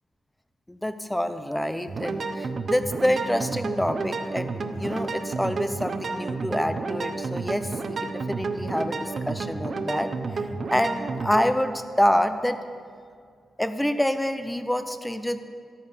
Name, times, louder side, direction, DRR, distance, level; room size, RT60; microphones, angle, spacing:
voice 1, 0.7-12.6 13.6-15.4, equal, 5° left, 10 dB, 0.6 m, -27 dB
sound 1, 1.9-11.5, right 3 dB, 40° right, 0.8 m, -31 dB
13.5 x 13.0 x 5.7 m, 2.1 s
wide cardioid pair, 170°, 0 cm